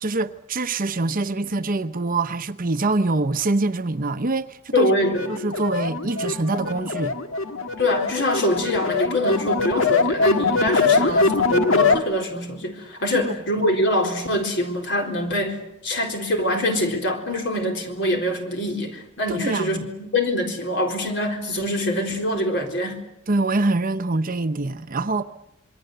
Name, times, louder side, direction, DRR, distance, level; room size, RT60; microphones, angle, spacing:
voice 1, 0.0-4.9 5.3-7.1 10.8-11.3 13.2-13.4 19.3-19.9 23.3-25.2, right 2 dB, 40° right, 0.9 m, -25 dB
voice 2, 4.7-5.3 7.8-23.0, left 1 dB, 60° left, 4.2 m, -24 dB
sound 1, 5.0-12.0, left 3 dB, 75° left, 1.7 m, -22 dB
27.0 x 22.5 x 8.0 m
head